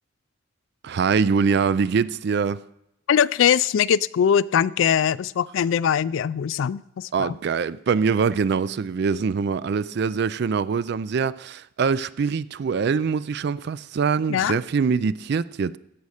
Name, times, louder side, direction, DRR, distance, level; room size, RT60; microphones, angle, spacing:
voice 1, 0.8-2.6 7.1-15.8, right 5 dB, 55° right, 0.4 m, -23 dB
voice 2, 3.1-7.3 14.3-14.6, left 8 dB, 80° left, 0.3 m, -21 dB
15.5 x 5.4 x 6.4 m
head